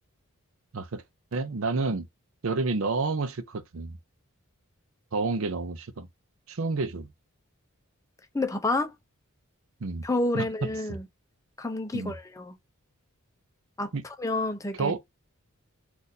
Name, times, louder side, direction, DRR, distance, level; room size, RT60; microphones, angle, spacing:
voice 1, 1.3-2.1 2.4-4.0 5.1-6.1 6.5-7.1 9.8-10.0 10.3-10.5 11.9-12.1 13.9-14.0 14.8-15.1, right 3 dB, 65° right, 0.6 m, -29 dB
voice 2, 8.3-8.9 10.0-11.1 11.6-12.6 13.8-14.9, left 2 dB, 15° left, 0.5 m, -29 dB
4.1 x 2.5 x 2.6 m
head